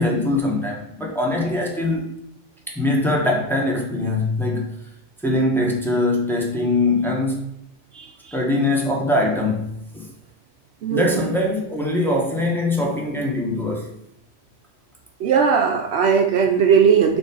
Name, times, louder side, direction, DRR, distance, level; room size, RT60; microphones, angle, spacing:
voice 1, 0.0-2.1 2.7-4.7 5.2-7.5 8.3-9.7 9.9-10.1 10.9-13.9, left 2 dB, ahead, -2 dB, 1.1 m, -22 dB
voice 2, 7.9-8.3 10.8-11.2 15.2-17.2, right 6 dB, 65° right, 3 dB, 0.8 m, -18 dB
5.2 x 3.7 x 5.2 m, 0.78 s
omnidirectional pair, 1.3 m